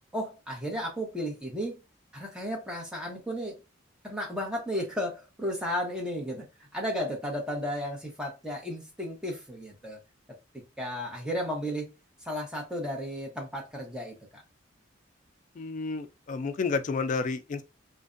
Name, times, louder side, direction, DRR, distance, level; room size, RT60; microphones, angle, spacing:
voice 1, 0.1-1.8 2.1-3.6 4.0-6.5 6.7-10.0 10.5-11.9 12.2-14.4, equal, 5° right, 0.8 m, -34 dB
voice 2, 15.6-17.6, left 4 dB, 40° left, 0.3 m, -30 dB
2.5 x 2.1 x 2.4 m
head